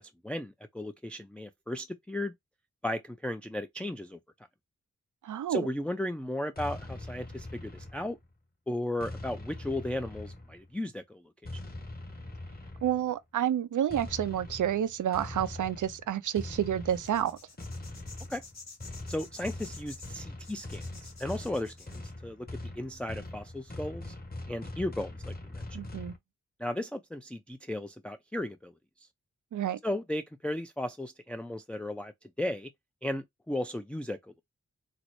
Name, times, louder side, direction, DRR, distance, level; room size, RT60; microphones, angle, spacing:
voice 1, 0.0-2.3 2.8-4.2 5.5-8.2 8.7-11.2 18.3-18.4 19.1-22.5 22.8-24.1 24.5-25.8 26.6-28.7 29.8-32.1 32.4-32.7 33.0-34.2, left 1 dB, 5° left, 0.4 m, -35 dB
voice 2, 5.2-5.7 12.8-17.4 25.7-26.1 29.5-29.8, right 10 dB, 85° right, 0.5 m, -29 dB
sound 1, 6.6-8.3 9.0-10.7 11.5-13.1 13.9-26.2, left 2 dB, 30° left, 1.3 m, -42 dB
sound 2, 16.9-22.1, left 4 dB, 65° left, 1.4 m, -50 dB
4.1 x 2.0 x 3.0 m
cardioid pair, 50°, 29 cm